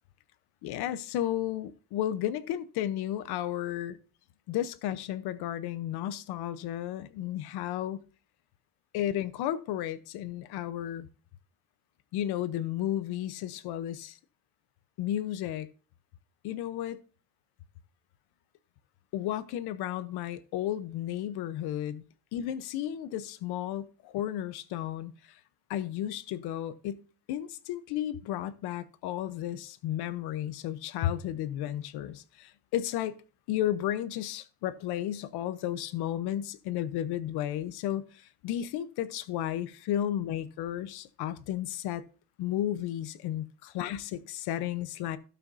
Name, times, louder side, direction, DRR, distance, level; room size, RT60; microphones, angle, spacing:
voice 1, 0.6-4.0 4.5-8.0 8.9-11.1 12.1-14.2 15.0-15.7 16.4-17.0 19.1-22.0 22.3-25.1 25.7-27.0 27.3-33.2 33.5-38.0 38.4-42.0 42.4-45.2, left 12 dB, 80° left, 0.9 m, -33 dB
16.5 x 5.8 x 2.7 m
cardioid pair, 150°, 38 cm